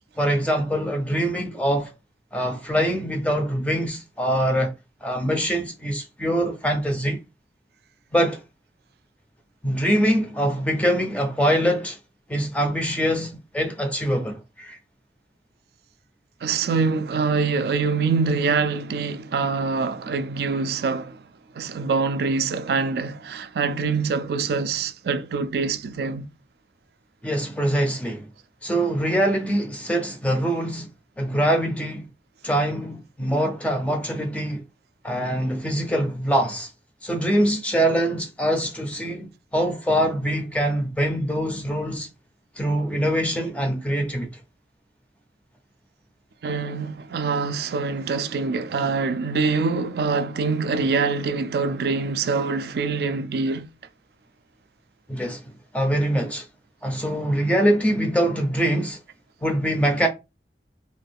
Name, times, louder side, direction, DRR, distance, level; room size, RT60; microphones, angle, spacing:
voice 1, 0.2-1.9 2.3-4.7 5.0-7.2 8.1-8.4 9.6-12.0 12.3-14.8 27.2-28.3 28.6-30.9 31.2-32.1 32.4-34.6 35.0-36.7 37.0-42.1 42.6-44.3 55.1-55.4 55.7-56.5 56.8-59.0 59.4-60.1, equal, 5° left, 0.4 m, -23 dB
voice 2, 16.4-21.2 21.5-26.3 46.4-53.7, right 4 dB, 60° right, 0.3 m, -24 dB
2.6 x 2.3 x 3.3 m
head